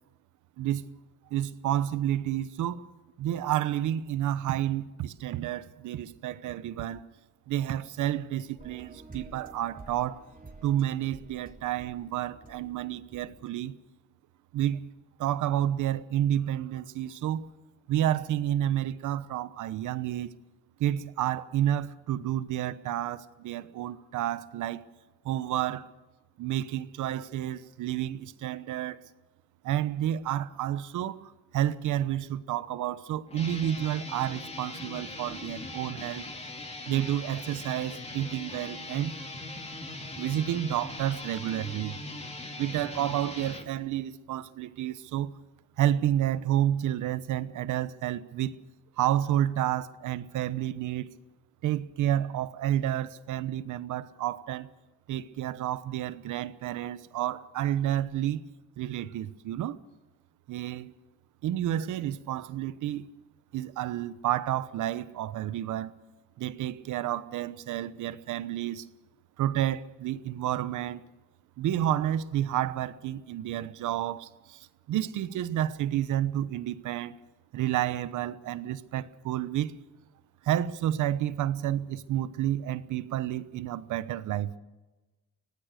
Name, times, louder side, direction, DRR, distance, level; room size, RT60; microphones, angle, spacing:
voice 1, 0.6-0.9 1.3-2.8 3.2-7.0 7.5-10.2 10.6-13.8 14.5-14.9 15.2-17.5 17.9-20.3 20.8-24.8 25.2-25.9 26.4-29.1 29.6-36.2 36.9-39.1 40.2-42.0 42.6-45.4 45.8-48.6 49.0-51.1 51.6-54.7 55.1-58.4 58.8-59.8 60.5-60.9 61.4-63.1 63.5-65.9 66.4-68.9 69.4-71.0 71.6-77.2 77.5-79.7 80.4-84.5, right 12 dB, 85° right, 1.1 m, -30 dB
sound 1, 8.6-13.5, right 3 dB, 30° right, 3.4 m, -50 dB
sound 2, 33.3-43.7, left 2 dB, 20° left, 3.1 m, -40 dB
24.5 x 18.5 x 6.7 m
cardioid pair, 90°, 30 cm